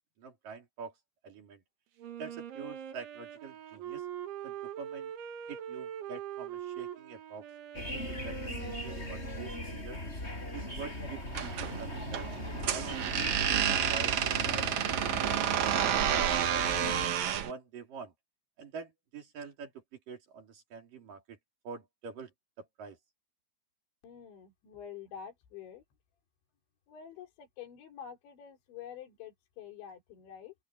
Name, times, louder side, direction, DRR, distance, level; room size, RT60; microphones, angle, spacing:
voice 1, 0.2-0.9 1.2-1.6 2.2-4.0 4.4-5.1 5.5-7.5 7.7-10.0 10.5-12.3 12.7-17.0 17.4-18.1 18.6-21.4 21.6-22.3 22.6-23.0, right 5 dB, 50° right, 5.0 m, -46 dB
Wind instrument woodwind instrument, 2.0-9.7, right 10 dB, 90° right, 4.6 m, -43 dB
sound 1, 7.7-17.1, left 1 dB, 15° left, 6.9 m, -39 dB
sound 2, 11.3-17.5, right 10 dB, 70° right, 1.7 m, -30 dB
voice 2, 24.0-25.8 26.9-30.5, left 8 dB, 75° left, 6.0 m, -47 dB
open air
omnidirectional pair, 5.2 m